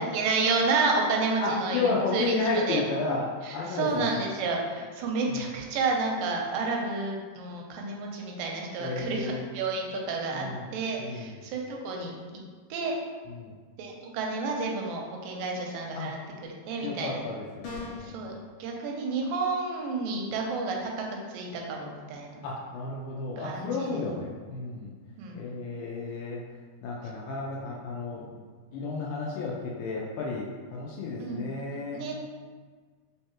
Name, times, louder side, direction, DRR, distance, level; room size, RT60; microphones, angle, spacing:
voice 1, 0.0-2.8 3.4-10.5 10.7-12.2 12.7-12.9 13.8-17.2 18.0-18.3 18.6-22.4 23.4-24.1 25.2-25.5 31.2-31.5 31.9-32.1, right 3 dB, 80° right, 0 dB, 2.2 m, -30 dB
voice 2, 1.4-4.1 5.3-5.4 8.8-9.5 10.3-10.7 11.0-11.3 13.3-13.5 15.9-16.2 16.8-18.2 22.4-24.9 25.3-26.4 26.8-28.4 28.7-32.0, left 3 dB, 85° left, -4 dB, 2.3 m, -32 dB
sound 1, 17.6-18.2, left 3 dB, 65° left, 2.4 m, -38 dB
5.4 x 3.3 x 2.8 m, 1.5 s
omnidirectional pair, 4.0 m